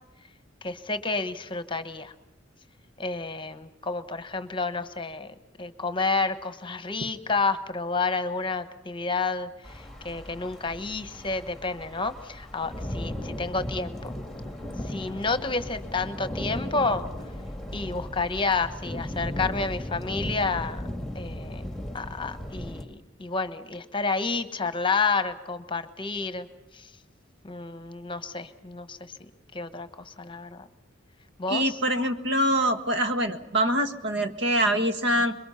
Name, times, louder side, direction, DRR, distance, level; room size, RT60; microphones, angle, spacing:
voice 1, 0.6-2.1 3.0-9.5 9.7-14.1 14.9-17.0 17.7-20.8 21.1-21.6 21.9-26.5 26.7-26.9 27.4-29.1 29.5-30.7 31.4-31.8, left 4 dB, 25° left, 11 dB, 1.1 m, -30 dB
sound 1, 9.6-22.8, left 1 dB, ahead, 1.9 m, -36 dB
voice 2, 31.5-35.3, right 1 dB, 60° right, 7 dB, 1.6 m, -24 dB
26.5 x 22.5 x 5.7 m, 1.0 s
head